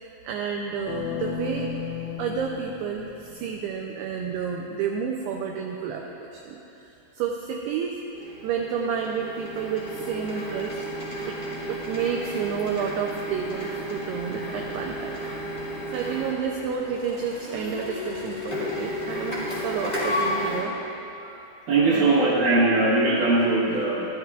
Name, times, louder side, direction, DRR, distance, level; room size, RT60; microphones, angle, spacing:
voice 1, 0.0-1.7 2.2-7.9 8.4-10.9 11.3-15.3 15.9-20.8 21.9-22.1, right 7 dB, 90° right, 1 dB, 2.3 m, -30 dB
sound 1, 0.9-3.8, left 6 dB, 85° left, 2.6 m, -34 dB
Printer, 8.1-20.6, equal, 20° left, 1.5 m, -33 dB
voice 2, 21.7-24.1, right 2 dB, 65° right, -6 dB, 2.3 m, -21 dB
12.5 x 12.5 x 2.4 m, 2.9 s
omnidirectional pair, 5.2 m